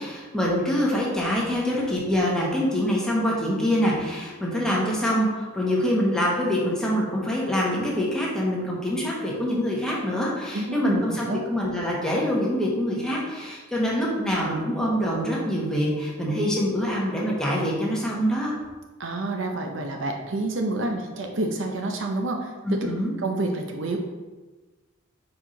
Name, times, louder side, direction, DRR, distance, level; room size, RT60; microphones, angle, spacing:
voice 1, 0.0-18.5 22.6-23.1, equal, 5° left, -5 dB, 1.2 m, -25 dB
voice 2, 10.5-11.4 19.0-22.9 23.2-24.0, right 2 dB, 65° right, 3 dB, 0.7 m, -28 dB
4.7 x 4.3 x 5.1 m, 1.2 s
head